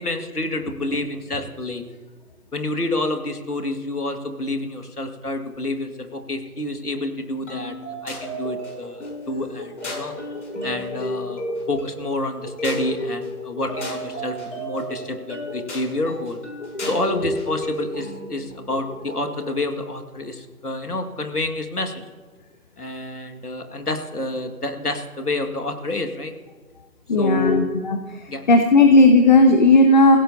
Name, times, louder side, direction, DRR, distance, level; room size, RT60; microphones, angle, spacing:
voice 1, 0.0-1.8 2.5-7.8 8.0-10.1 10.6-11.4 11.7-16.4 16.9-22.0 22.8-26.3 27.2-27.7 28.3-28.4, left 2 dB, 80° left, 6 dB, 2.1 m, -28 dB
sound 1, 7.5-19.6, equal, 50° left, 5.9 m, -32 dB
voice 2, 27.1-28.0 28.5-30.2, left 2 dB, 30° left, 6 dB, 0.8 m, -14 dB
27.5 x 16.5 x 2.8 m, 1.4 s
figure-of-eight pair, 140°, 45 cm